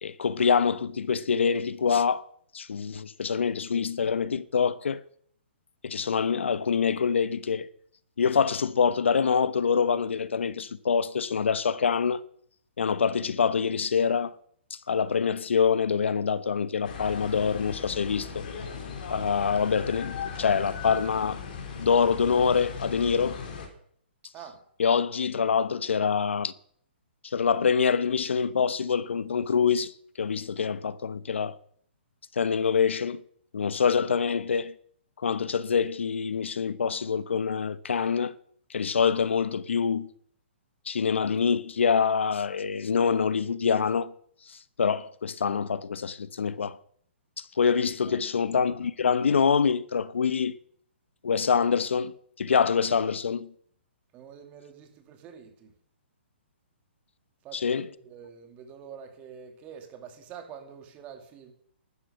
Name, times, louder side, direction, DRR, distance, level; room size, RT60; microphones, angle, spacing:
voice 1, 0.0-2.3 2.5-5.0 5.8-7.7 8.2-12.2 12.8-14.3 14.7-18.5 19.1-21.4 21.8-23.4 24.8-26.5 27.2-29.9 30.2-31.6 32.4-33.2 33.5-34.7 35.2-38.3 38.7-40.1 40.9-44.1 44.5-46.8 47.4-50.5 51.2-53.5 57.5-57.9, left 6 dB, 85° left, 1.0 m, -25 dB
sound 1, 16.8-23.7, left 6 dB, 50° left, 4.0 m, -38 dB
voice 2, 54.1-55.7 57.4-61.5, right 7 dB, 20° right, 2.3 m, -46 dB
15.5 x 12.0 x 5.8 m
hypercardioid pair, 155°, 6 cm